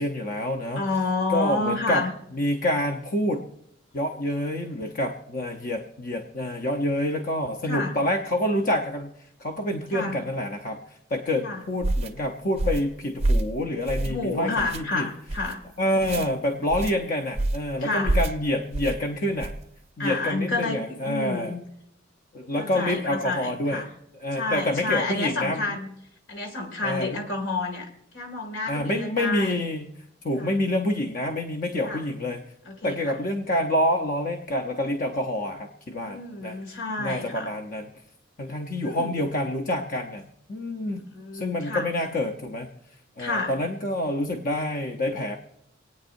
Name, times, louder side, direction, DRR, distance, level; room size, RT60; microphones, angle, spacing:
voice 1, 0.0-0.8 1.3-2.0 2.3-3.5 3.9-9.1 9.4-10.8 11.1-15.1 15.8-19.5 20.0-21.5 22.3-23.9 24.2-25.8 26.8-27.2 28.7-29.9 30.2-32.4 32.8-36.6 37.0-37.9 38.4-41.0 41.3-42.7 43.2-45.4, left 1 dB, 45° left, 3 dB, 0.8 m, -27 dB
voice 2, 0.8-2.1 7.6-8.0 9.9-10.2 11.4-11.7 14.0-15.6 16.2-16.3 17.8-18.2 20.0-21.6 22.6-23.9 24.3-25.9 26.3-29.6 30.4-30.5 31.9-32.1 32.6-33.2 36.0-37.5 38.8-39.2 40.8-41.9 43.2-43.5, left 3 dB, 75° left, 3 dB, 2.2 m, -30 dB
sound 1, 11.8-12.1 12.6-12.9 13.2-13.5 13.9-14.2 14.6-14.8 15.3-15.5 16.0-16.3 16.7-16.9 17.4-17.7 18.0-18.4 18.7-19.0 19.4-19.6, right 2 dB, 30° right, 0.6 m, -26 dB
27.0 x 9.1 x 2.6 m, 0.77 s
head